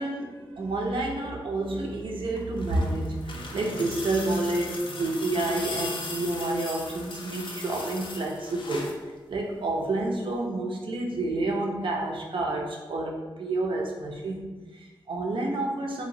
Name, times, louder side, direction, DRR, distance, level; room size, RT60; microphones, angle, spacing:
voice 1, 0.0-16.1, right 2 dB, 70° right, 0 dB, 0.5 m, -29 dB
sound 1, 2.3-9.0 10.3-10.4, left 3 dB, 65° left, 0.4 m, -38 dB
2.9 x 2.1 x 2.6 m, 1.2 s
cardioid pair, 70°, 9 cm